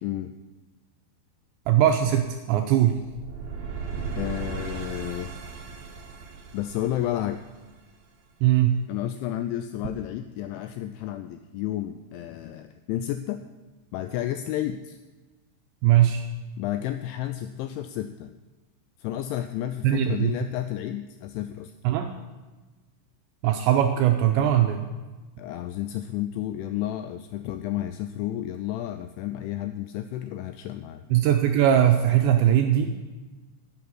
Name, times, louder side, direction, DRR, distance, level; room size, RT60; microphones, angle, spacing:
voice 1, 0.0-0.3 4.2-5.3 6.5-7.4 8.9-13.4 13.9-15.0 16.6-18.3 19.0-21.7 25.4-31.0, left 12 dB, 85° left, 9 dB, 2.7 m, -31 dB
voice 2, 1.7-3.0 8.4-8.8 15.8-16.2 19.8-20.3 21.8-22.1 23.4-24.9 31.1-33.0, right 11 dB, 80° right, 5 dB, 2.6 m, -20 dB
sound 1, 3.0-8.0, right 5 dB, 60° right, 2.7 m, -36 dB
11.0 x 7.9 x 9.8 m, 1.2 s
omnidirectional pair, 5.9 m